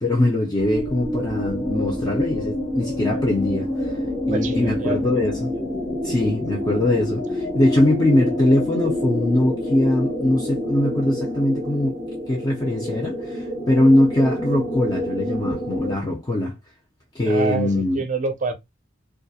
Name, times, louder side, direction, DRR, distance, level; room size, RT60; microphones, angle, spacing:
voice 1, 0.0-3.9 4.3-5.5 6.0-12.0 12.3-16.5 17.1-18.0, left 1 dB, 20° left, 0.5 m, -21 dB
sound 1, 0.6-16.0, left 1 dB, 60° left, 1.0 m, -27 dB
voice 2, 4.3-5.0 17.2-18.5, right 4 dB, 40° right, 0.5 m, -26 dB
2.3 x 2.1 x 2.6 m
head